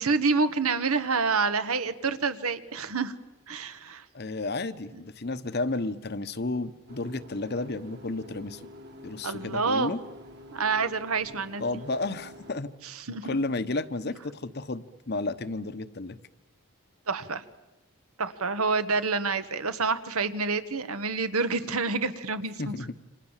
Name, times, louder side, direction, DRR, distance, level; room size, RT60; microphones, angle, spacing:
voice 1, 0.0-3.1 3.5-4.0 9.2-9.9 10.5-11.6 12.8-13.4 17.1-17.4 18.2-22.7, right 4 dB, 85° right, 11 dB, 1.5 m, -28 dB
voice 2, 4.1-8.6 9.0-10.0 11.6-12.7 13.1-16.2 22.6-22.9, left 2 dB, 50° left, 12 dB, 1.0 m, -32 dB
sound 1, 6.9-12.6, left 1 dB, 50° right, 2.1 m, -48 dB
29.0 x 25.5 x 7.4 m, 1.0 s
head